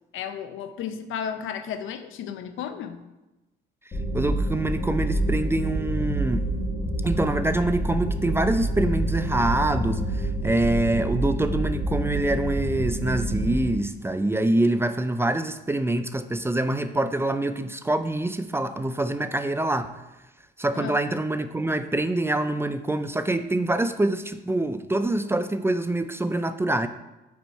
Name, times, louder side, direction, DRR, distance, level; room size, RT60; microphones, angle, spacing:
voice 1, 0.1-3.0 20.7-21.0, left 8 dB, 80° left, 9 dB, 0.6 m, -33 dB
sound 1, 3.9-13.6, right 1 dB, 35° left, 1.3 m, -27 dB
voice 2, 4.1-6.5 7.0-19.9 20.6-26.9, right 2 dB, 10° right, 10 dB, 0.3 m, -25 dB
5.2 x 4.5 x 4.5 m, 1.0 s
cardioid pair, 90°, 20 cm